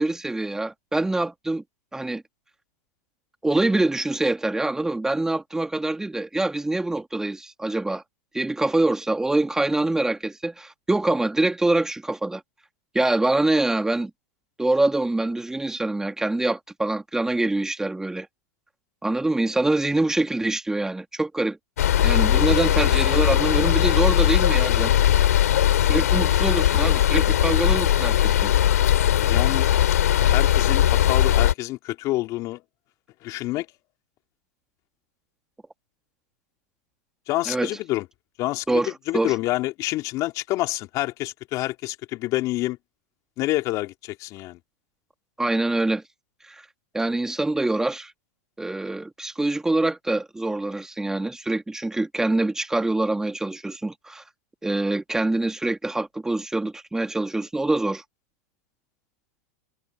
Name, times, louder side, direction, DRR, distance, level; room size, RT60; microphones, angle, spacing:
voice 1, 0.0-1.6 1.9-2.2 3.4-8.0 8.3-12.4 12.9-14.1 14.6-18.3 19.0-21.6 22.0-24.9 25.8-28.5 37.5-37.7 38.7-39.4 45.4-46.0 46.5-46.6 46.9-48.1 48.6-54.2 54.6-58.0, right 2 dB, 5° right, 2.3 m, -25 dB
sound 1, 21.8-31.5, left 11 dB, 80° left, 3.3 m, -19 dB
voice 2, 29.2-29.7 30.2-32.6 33.2-33.7 37.3-38.0 38.4-42.8 43.4-44.6, left 18 dB, 40° left, 2.8 m, -27 dB
hypercardioid pair, 120°, 8 cm